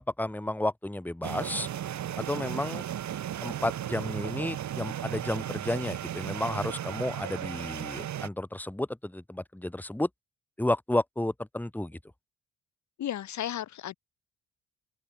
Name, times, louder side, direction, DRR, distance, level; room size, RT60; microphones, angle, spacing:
voice 1, 0.0-1.7 2.2-2.9 3.4-10.1 10.6-12.0, left 1 dB, 5° left, 2.2 m, -32 dB
sound 1, 1.2-8.3, right 11 dB, 65° right, 4.7 m, -35 dB
voice 2, 13.0-13.9, left 11 dB, 65° left, 3.1 m, -34 dB
supercardioid pair, 65°, 31 cm